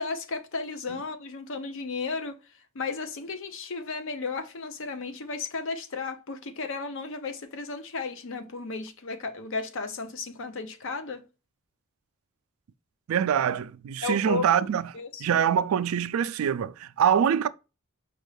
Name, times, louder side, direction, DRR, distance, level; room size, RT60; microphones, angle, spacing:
voice 1, 0.0-2.4 2.7-11.2 14.0-14.7 14.9-15.4, left 4 dB, 65° left, 0.7 m, -34 dB
voice 2, 13.1-14.8 15.2-17.5, right 8 dB, 75° right, 0.3 m, -24 dB
5.3 x 2.3 x 3.2 m
head